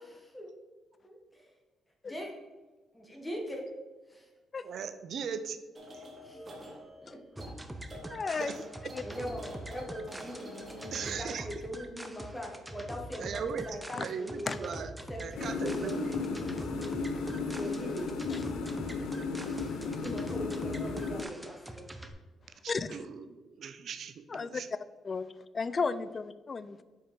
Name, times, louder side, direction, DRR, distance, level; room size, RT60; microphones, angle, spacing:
voice 1, 1.0-1.5 2.0-2.3 2.9-3.6 4.1-4.3 6.2-6.5 7.0-7.2 9.0-14.6 15.1-16.9 17.4-18.1 20.0-21.9, equal, 10° left, 0 dB, 1.3 m, -41 dB
voice 2, 4.6-5.6 5.9-6.1 8.4-8.6 10.9-11.5 13.2-13.7 14.0-14.9 15.2-16.1 20.4-20.5 22.6-24.7, right 6 dB, 60° right, 10 dB, 0.5 m, -38 dB
sound 1, 5.7-11.3, right 1 dB, 30° right, 1.4 m, -48 dB
sound 2, 7.4-22.1, right 1 dB, 10° right, 0.6 m, -44 dB
voice 3, 8.1-8.6 8.9-9.0 14.0-14.1 14.5-14.6 18.3-18.4 20.1-20.2 22.7-23.1 24.3-24.6 25.0-25.3 25.5-26.8, left 4 dB, 35° left, 15 dB, 0.3 m, -34 dB
sound 3, 15.3-21.2, left 4 dB, 80° left, 0.7 m, -35 dB
5.3 x 4.4 x 5.0 m, 1.2 s
cardioid pair, 90°, 0 cm